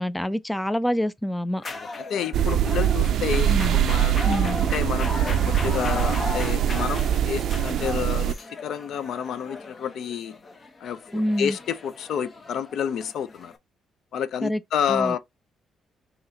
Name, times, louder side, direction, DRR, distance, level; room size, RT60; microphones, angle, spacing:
voice 1, 0.0-1.6 3.5-3.8 4.2-4.6 11.1-11.6 14.4-14.6 14.9-15.1, equal, 5° left, 0.4 m, -26 dB
sound 1, 1.6-13.6, left 3 dB, 35° left, 0.9 m, -37 dB
voice 2, 1.7-4.1 4.6-8.4 8.6-10.4 10.8-13.5 14.1-15.2, left 8 dB, 70° left, 0.5 m, -29 dB
sound 2, 2.3-8.3, right 10 dB, 70° right, 0.3 m, -23 dB
5.5 x 3.0 x 2.7 m
cardioid pair, 90°, 0 cm